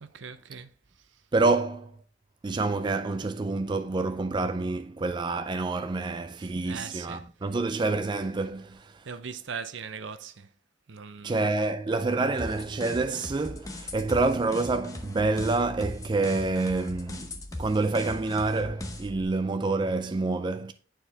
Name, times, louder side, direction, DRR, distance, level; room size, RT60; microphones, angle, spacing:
voice 1, 0.0-0.7 6.4-7.3 9.0-10.5 10.9-11.5 11.9-12.0, right 6 dB, 75° right, 0.6 m, -40 dB
voice 2, 1.3-2.0 2.4-9.0 11.2-20.7, right 3 dB, 25° right, 0.3 m, -27 dB
sound 1, 12.4-19.2, left 1 dB, 20° left, 0.8 m, -39 dB
8.9 x 4.6 x 3.4 m
head